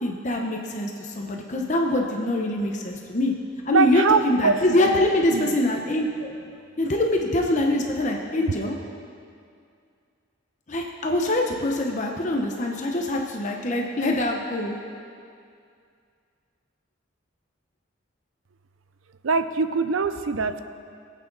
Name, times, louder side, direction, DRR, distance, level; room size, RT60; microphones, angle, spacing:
voice 1, 0.0-3.3 3.7-6.3 6.8-8.8 10.7-14.8, left 1 dB, 35° left, 1 dB, 0.9 m, -24 dB
voice 2, 3.7-5.0 5.3-5.6 19.2-20.7, right 4 dB, 85° right, 10 dB, 0.6 m, -23 dB
21.5 x 8.5 x 4.0 m, 2.4 s
head